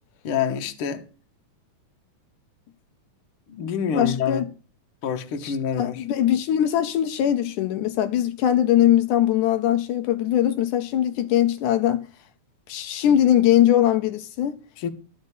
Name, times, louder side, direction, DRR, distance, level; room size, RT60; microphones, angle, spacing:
voice 1, 0.2-1.1 3.5-4.4 5.0-6.1 14.8-14.9, left 7 dB, 55° left, 1.9 m, -27 dB
voice 2, 3.9-4.4 5.4-12.1 12.7-14.6, left 11 dB, 80° left, 2.2 m, -21 dB
12.5 x 5.3 x 8.2 m
omnidirectional pair, 3.6 m